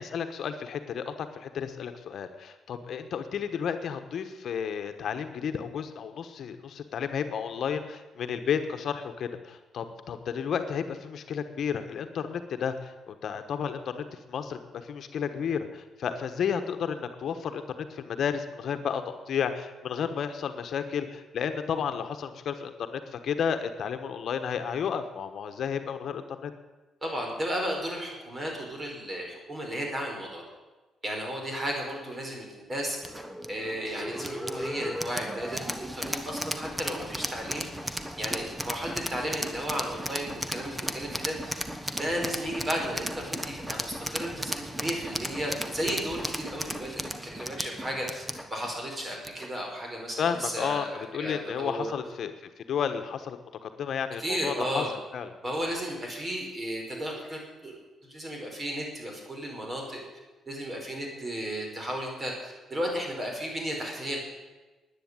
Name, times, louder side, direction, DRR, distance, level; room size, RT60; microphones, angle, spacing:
voice 1, 0.0-26.5 50.2-54.8 55.1-55.3, left 7 dB, 60° left, 8 dB, 1.2 m, -32 dB
voice 2, 27.0-30.4 31.0-33.2 33.5-37.7 38.2-41.5 42.0-48.2 48.5-51.9 54.2-54.9 55.4-57.8 58.0-60.0 60.5-64.3, equal, 30° right, 0 dB, 5.1 m, -34 dB
sound 1, 33.0-49.6, right 1 dB, 10° right, 1.1 m, -35 dB
10.0 x 9.9 x 9.7 m, 1.2 s
cardioid pair, 90°, 0 cm